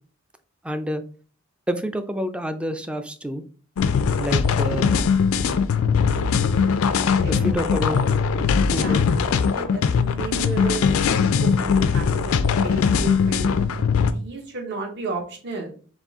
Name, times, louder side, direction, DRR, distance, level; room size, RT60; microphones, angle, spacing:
voice 1, 0.6-1.0 1.7-3.4 4.2-4.9 7.3-8.0 8.7-9.1, equal, 5° right, 9 dB, 0.3 m, -28 dB
sound 1, 3.8-14.1, left 6 dB, 90° left, 0.4 m, -20 dB
voice 2, 7.2-7.8 8.6-13.5 14.0-15.7, right 3 dB, 55° right, 1 dB, 1.0 m, -34 dB
4.1 x 2.6 x 3.5 m, 0.41 s
head